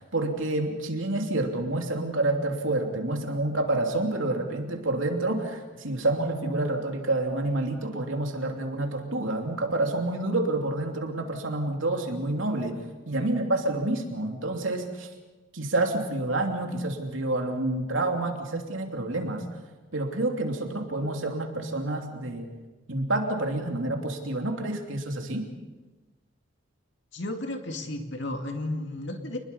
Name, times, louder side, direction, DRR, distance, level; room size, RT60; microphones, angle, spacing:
voice 1, 0.0-12.8 13.0-15.1 15.5-19.4 19.9-22.5 22.9-25.4, right 2 dB, 70° right, 2 dB, 3.1 m, -28 dB
voice 2, 27.1-29.4, left 1 dB, 60° left, 4 dB, 2.3 m, -33 dB
28.5 x 21.0 x 5.5 m, 1.2 s
head